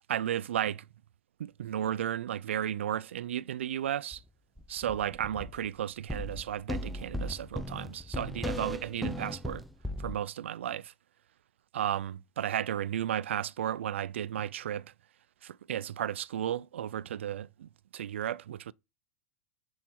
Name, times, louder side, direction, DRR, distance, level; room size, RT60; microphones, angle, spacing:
voice 1, 0.1-0.9 1.4-4.2 4.7-9.6 10.0-10.9 11.7-14.9 15.4-18.7, right 10 dB, 85° right, 0.4 m, -34 dB
sound 1, 4.1-4.2 4.6-5.7 6.1-10.1, left 1 dB, ahead, 0.7 m, -37 dB
10.0 x 4.7 x 4.4 m
hypercardioid pair, 115°, 6 cm